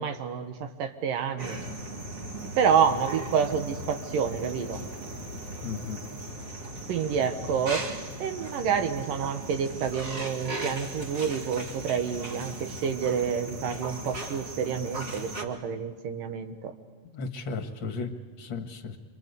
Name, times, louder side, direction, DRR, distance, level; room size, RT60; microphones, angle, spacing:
voice 1, 0.0-1.6 2.6-4.8 6.9-7.8 8.2-16.7, right 7 dB, 80° right, 7 dB, 3.1 m, -28 dB
sound 1, 1.4-15.4, right 2 dB, 30° right, 2.1 m, -38 dB
voice 2, 5.6-6.0 17.1-19.0, left 4 dB, 45° left, 6 dB, 2.0 m, -35 dB
27.0 x 27.0 x 8.3 m, 1.3 s
omnidirectional pair, 3.9 m